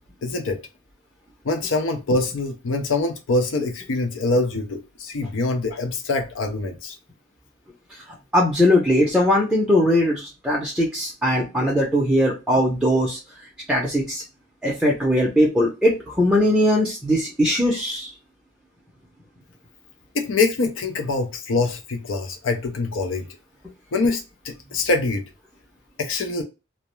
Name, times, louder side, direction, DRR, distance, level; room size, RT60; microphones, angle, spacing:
voice 1, 0.2-0.6 1.4-7.0 20.1-23.3 23.9-25.2 26.0-26.4, left 3 dB, 90° left, 0.5 m, -24 dB
voice 2, 8.3-13.2 13.7-14.2 14.6-18.1, left 1 dB, 5° right, 0.5 m, -20 dB
2.3 x 2.1 x 2.9 m
head